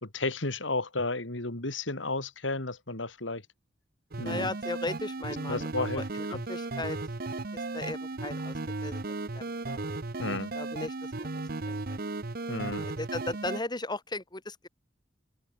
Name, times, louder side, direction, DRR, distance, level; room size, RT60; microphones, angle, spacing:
voice 1, 0.0-3.4 4.2-4.5 5.5-6.0 6.3-6.4 10.2-10.5 12.5-12.9, left 2 dB, 90° left, 3.5 m, -32 dB
sound 1, 4.1-13.6, right 2 dB, 55° right, 1.1 m, -35 dB
voice 2, 4.2-7.0 7.5-9.0 9.3-10.3 10.5-12.0 12.8-14.7, left 2 dB, 25° left, 2.3 m, -37 dB
head